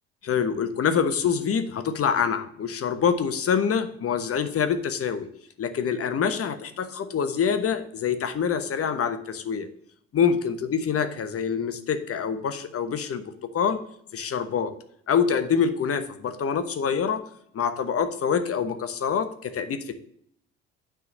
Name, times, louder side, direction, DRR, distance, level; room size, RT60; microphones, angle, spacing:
voice 1, 0.2-5.3 5.6-9.7 10.1-13.8 14.1-14.7 15.1-17.2 17.5-19.9, left 7 dB, 45° left, 9 dB, 1.1 m, -25 dB
9.4 x 3.9 x 6.5 m, 0.67 s
hypercardioid pair, 55°, 32 cm